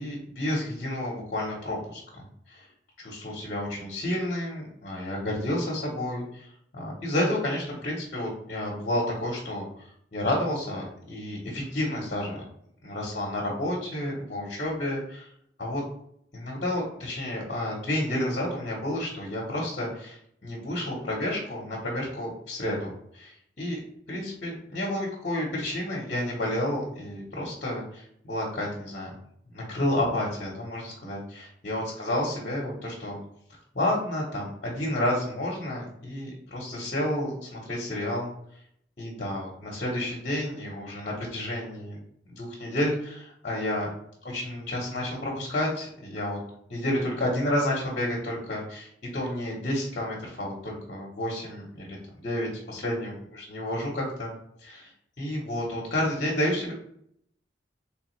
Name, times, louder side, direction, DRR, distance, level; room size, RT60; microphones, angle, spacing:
voice 1, 0.0-2.7 3.0-6.5 6.7-12.4 12.8-15.3 15.6-15.8 16.3-23.8 24.1-29.1 29.5-33.2 33.7-38.3 39.0-42.0 42.4-43.9 44.2-46.4 46.7-54.3 54.6-54.9 55.2-56.7, left 1 dB, 50° left, -4 dB, 1.0 m, -30 dB
3.5 x 3.4 x 3.2 m, 0.69 s
head